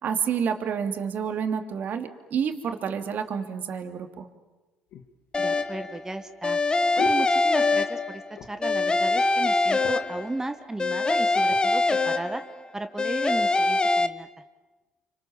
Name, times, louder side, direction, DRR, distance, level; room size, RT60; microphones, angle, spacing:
voice 1, 0.0-4.3, right 7 dB, 55° right, 6 dB, 2.9 m, -29 dB
sound 1, 4.9-8.0 8.3-8.8 9.1-9.2 9.5-10.2 10.9-11.7 12.3-12.5, left 7 dB, 65° left, 2.5 m, -39 dB
sound 2, 5.3-5.9 6.4-8.3 8.6-10.4 10.8-12.6 13.0-14.1, left 3 dB, 25° left, 1.4 m, -23 dB
voice 2, 5.4-6.6 7.0-8.2 8.5-12.4 12.7-14.3, right 2 dB, 15° right, 8 dB, 1.7 m, -35 dB
29.5 x 26.5 x 7.3 m, 1.2 s
supercardioid pair, 70°, 4 cm